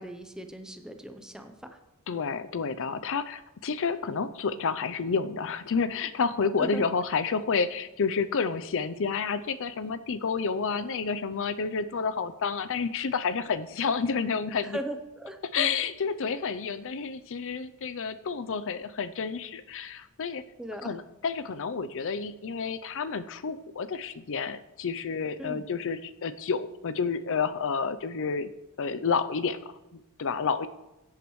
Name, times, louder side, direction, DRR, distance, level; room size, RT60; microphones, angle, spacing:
voice 1, 0.0-1.8 6.6-6.8 14.6-15.7 20.6-21.0 25.4-25.7, right 1 dB, 5° right, 6 dB, 0.7 m, -38 dB
voice 2, 2.1-14.8 15.5-20.4 20.8-28.5 28.8-30.7, left 5 dB, 65° left, 13 dB, 0.5 m, -30 dB
17.0 x 8.4 x 3.2 m, 1.0 s
head